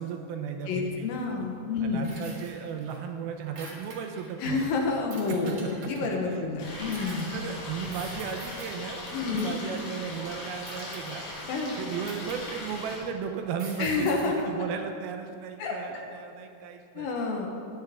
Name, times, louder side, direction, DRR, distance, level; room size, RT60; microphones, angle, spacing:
voice 1, 0.0-1.1 1.8-4.6 5.3-5.4 5.6-5.7 6.0-6.5 6.7-6.9 7.3-17.1, right 7 dB, 80° right, 5 dB, 2.6 m, -36 dB
voice 2, 0.7-2.2 4.4-7.3 9.1-9.6 11.5-11.7 13.8-14.5 15.6-16.0 16.9-17.5, left 4 dB, 70° left, 1 dB, 2.8 m, -29 dB
sound 1, 2.0-3.0 3.3-4.3 5.1-6.2 6.9-7.4 7.9-8.7 9.4-9.8 10.7-11.4 12.1-13.1 13.6-14.5, right 3 dB, 50° right, 2.1 m, -46 dB
Stream, 6.6-13.0, left 2 dB, 85° left, 4.4 m, -39 dB
14.5 x 10.5 x 3.6 m, 2.4 s
omnidirectional pair, 4.5 m